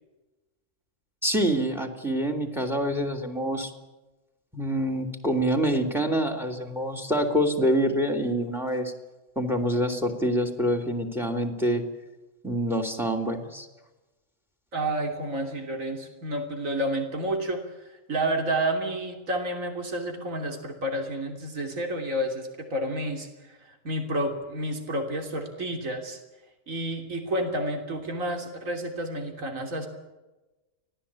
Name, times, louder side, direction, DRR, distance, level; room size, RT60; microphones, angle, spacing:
voice 1, 1.2-3.7 4.5-8.9 9.3-11.8 12.4-13.7, equal, ahead, 6 dB, 3.1 m, -26 dB
voice 2, 14.7-17.6 17.9-26.2 26.7-29.9, right 1 dB, 70° right, 4 dB, 3.5 m, -30 dB
25.0 x 17.5 x 8.7 m, 1.1 s
omnidirectional pair, 1.5 m